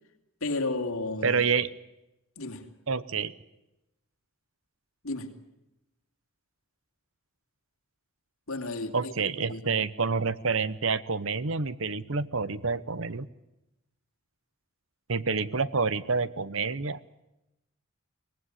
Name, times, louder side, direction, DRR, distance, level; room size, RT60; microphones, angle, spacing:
voice 1, 0.4-1.4 2.4-2.7 5.0-5.3 8.5-9.1 9.5-9.8, left 2 dB, 65° left, 2.9 m, -33 dB
voice 2, 1.2-1.7 2.9-3.3 8.9-13.3 15.1-17.0, right 5 dB, 60° right, 0.9 m, -28 dB
24.0 x 18.5 x 9.9 m
head